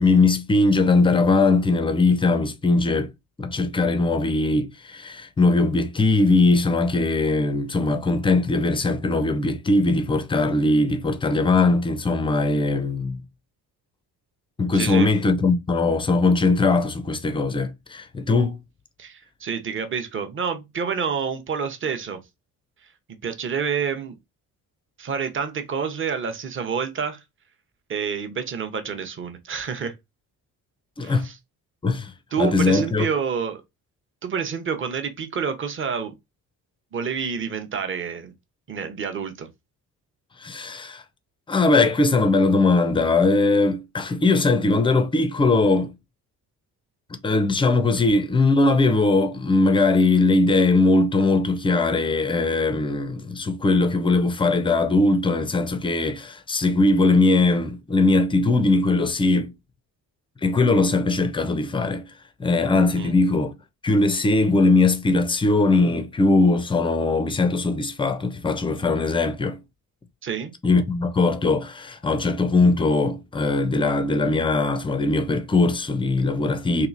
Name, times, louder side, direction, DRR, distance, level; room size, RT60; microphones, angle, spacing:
voice 1, 0.0-3.1 3.4-13.2 14.6-18.6 31.0-31.3 31.8-32.1 32.4-33.1 40.4-41.0 41.5-45.9 47.2-59.5 60.4-62.0 62.4-63.5 63.8-69.6 70.6-76.9, left 3 dB, 10° left, 0.3 m, -20 dB
voice 2, 14.7-15.1 19.0-22.2 23.2-24.2 25.0-27.2 27.9-29.9 31.0-31.4 32.3-33.6 34.2-36.1 36.9-38.3 38.7-39.5 63.0-63.1 70.2-70.5, right 6 dB, 25° right, 0.6 m, -28 dB
2.9 x 2.3 x 2.4 m
hypercardioid pair, 45°, 46 cm